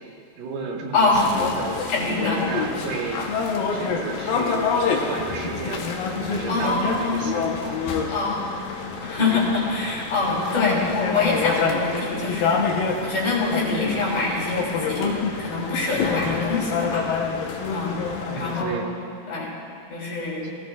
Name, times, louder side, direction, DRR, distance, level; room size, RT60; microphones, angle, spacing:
voice 1, 0.4-1.8 2.2-3.3 3.7-4.7 5.1-7.8 18.3-18.9 20.4-20.6, right 5 dB, 75° right, 0 dB, 2.9 m, -33 dB
voice 2, 0.9-1.2 1.9-2.4 6.5-7.3 8.1-8.5 9.0-12.6 13.0-15.1 15.4-17.0 17.7-18.0 18.3-18.9 19.3-19.5 19.9-20.5, left 3 dB, 60° left, -6 dB, 4.5 m, -24 dB
sound 1, 1.1-18.6, left 5 dB, 80° left, 2.7 m, -27 dB
17.5 x 17.5 x 2.4 m, 2.4 s
omnidirectional pair, 4.1 m